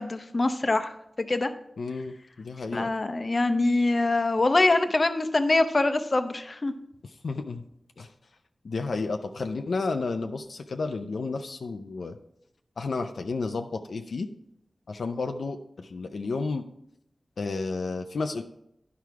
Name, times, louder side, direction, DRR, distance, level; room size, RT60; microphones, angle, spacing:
voice 1, 0.0-1.5 2.7-6.7, left 2 dB, 45° left, 9 dB, 0.7 m, -24 dB
voice 2, 1.8-2.9 7.2-7.6 8.0-8.1 8.6-12.2 12.8-14.3 14.9-16.7 17.4-18.4, left 3 dB, 85° left, 6 dB, 0.4 m, -31 dB
10.5 x 4.7 x 4.6 m, 0.78 s
wide cardioid pair, 60°, 0 cm